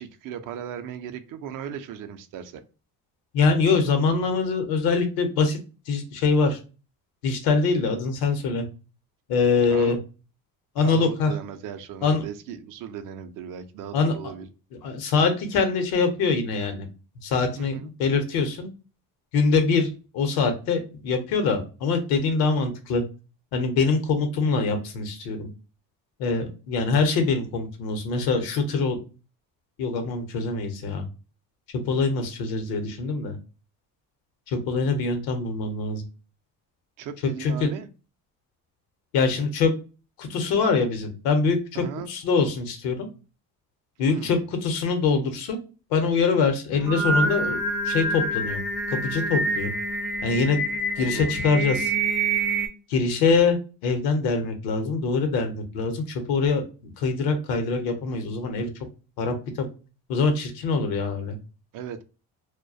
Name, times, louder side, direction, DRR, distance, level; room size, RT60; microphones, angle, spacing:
voice 1, 0.0-2.6 9.7-10.0 10.8-14.5 17.6-17.9 37.0-37.9 41.8-42.1 44.1-44.4 51.0-51.3 61.7-62.0, right 8 dB, 65° right, 8 dB, 0.5 m, -37 dB
voice 2, 3.3-5.6 5.9-6.6 7.2-8.7 9.3-10.0 10.7-11.3 12.0-12.2 13.9-14.1 14.8-16.9 17.2-18.7 19.3-23.0 23.5-25.5 26.2-29.0 29.8-31.1 31.7-33.4 34.5-36.0 37.4-37.7 39.1-39.7 40.2-43.1 44.0-45.6 45.9-48.6 48.9-49.7 50.2-50.6 51.0-51.9 52.9-53.6 53.8-58.7 59.2-59.7 60.1-61.4, left 4 dB, 90° left, 6 dB, 0.7 m, -24 dB
Singing, 46.7-52.7, right 2 dB, 5° right, 0.3 m, -26 dB
2.3 x 2.1 x 2.5 m, 0.33 s
cardioid pair, 115°, 35 cm